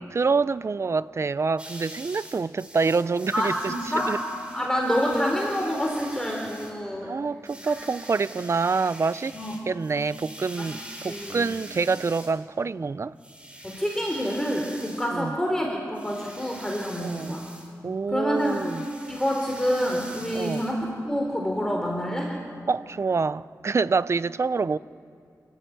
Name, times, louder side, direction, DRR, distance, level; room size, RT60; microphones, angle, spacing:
voice 1, 0.1-3.7 4.1-4.2 7.0-9.4 9.7-13.1 15.1-15.4 17.0-17.4 17.8-18.9 20.3-20.6 22.7-24.8, right 4 dB, 45° right, 0.6 m, -26 dB
sound 1, 1.6-6.8 7.4-12.4 13.2-15.2 15.9-17.7 18.3-20.8, right 1 dB, 15° right, 4.5 m, -44 dB
voice 2, 3.3-4.1 4.5-7.1 7.6-8.0 9.3-9.7 10.6-10.7 11.0-11.5 13.6-17.5 18.1-18.6 19.1-22.3, equal, 10° left, 3.6 m, -27 dB
29.5 x 13.5 x 9.3 m
wide cardioid pair, 90°, 7 cm